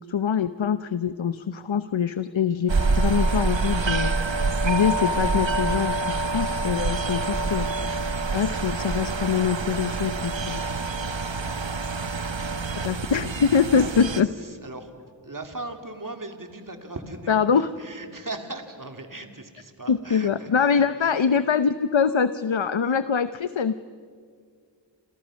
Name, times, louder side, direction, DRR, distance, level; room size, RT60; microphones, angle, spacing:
voice 1, 0.1-4.4 4.6-7.7 8.3-10.6 12.8-14.3 17.3-17.7 19.9-23.7, left 6 dB, 85° left, 12 dB, 0.8 m, -24 dB
sound 1, 2.7-14.2, right 3 dB, 75° right, 1.2 m, -26 dB
voice 2, 14.2-21.2 22.9-23.0, right 2 dB, 45° right, 5 dB, 2.8 m, -39 dB
29.5 x 28.0 x 6.4 m, 2.1 s
wide cardioid pair, 40°, 45 cm